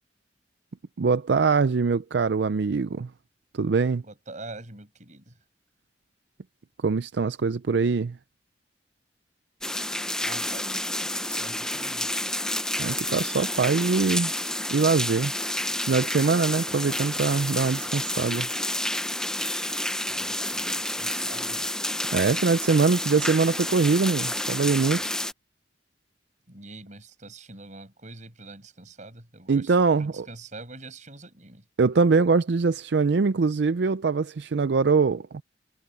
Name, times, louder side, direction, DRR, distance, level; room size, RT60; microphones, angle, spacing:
voice 1, 1.0-3.1 3.5-4.0 6.8-8.2 12.8-14.3 14.7-15.3 15.9-18.5 22.1-25.1 29.5-30.3 31.8-35.4, right 4 dB, 70° right, 0.5 m, -23 dB
voice 2, 4.1-5.3 10.2-12.1 20.1-21.7 26.5-29.7 30.0-31.6, right 2 dB, 45° right, 6.2 m, -44 dB
sound 1, 9.6-25.3, left 1 dB, 5° left, 0.7 m, -30 dB
head